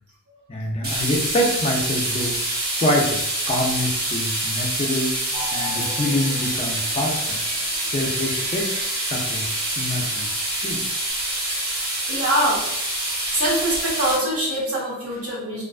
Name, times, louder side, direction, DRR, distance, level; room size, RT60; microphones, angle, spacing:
voice 1, 0.5-2.4 2.8-5.2 5.5-7.4 7.9-8.7 9.0-9.5 9.8-10.8, left 1 dB, 25° left, -1 dB, 0.4 m, -25 dB
sound 1, 0.8-14.2, right 1 dB, 45° right, 0.8 m, -26 dB
sound 2, 5.3-11.1, left 1 dB, 10° right, 0.8 m, -39 dB
voice 2, 12.1-12.7 13.3-15.6, right 1 dB, 80° right, -5 dB, 1.0 m, -23 dB
2.4 x 2.2 x 2.3 m, 0.83 s
head